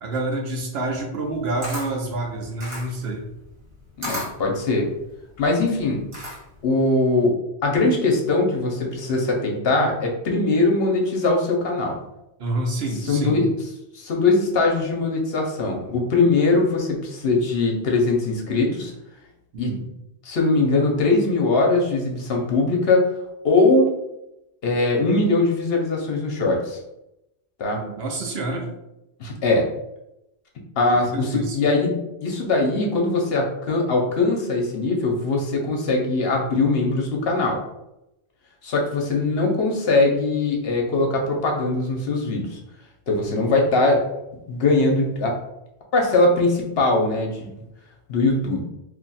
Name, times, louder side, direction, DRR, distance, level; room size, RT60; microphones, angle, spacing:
voice 1, 0.0-3.2 12.4-13.4 19.5-19.8 27.9-28.7 30.9-31.6, right 2 dB, 65° right, 0 dB, 0.8 m, -28 dB
Camera, 1.2-6.7, left 1 dB, 50° right, 1.4 m, -35 dB
voice 2, 4.0-4.9 5.4-6.0 6.6-7.3 7.6-12.0 13.1-13.5 13.9-18.9 19.6-19.8 20.2-23.1 23.4-23.9 24.6-26.8 27.6-27.8 29.2-29.6 30.8-31.9 32.2-37.6 38.6-42.6 43.1-44.0 44.5-45.4 45.9-47.5 48.1-48.6, left 2 dB, 60° left, 1 dB, 0.8 m, -21 dB
2.5 x 2.2 x 3.9 m, 0.88 s
omnidirectional pair, 1.2 m